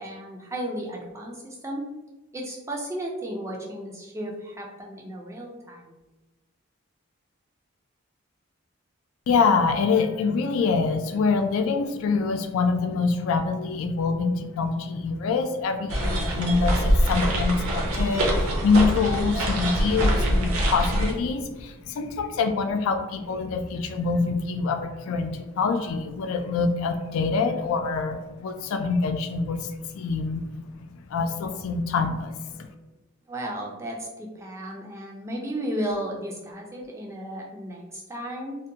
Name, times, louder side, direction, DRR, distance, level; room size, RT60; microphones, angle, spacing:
voice 1, 0.0-1.9 2.3-5.9 33.3-38.6, right 1 dB, 15° right, -1 dB, 0.3 m, -34 dB
voice 2, 9.3-30.5 30.7-32.7, left 4 dB, 75° left, 6 dB, 0.3 m, -25 dB
sound 1, 15.9-21.1, equal, 75° right, 0.6 m, -24 dB
2.6 x 2.1 x 2.7 m, 1.1 s
head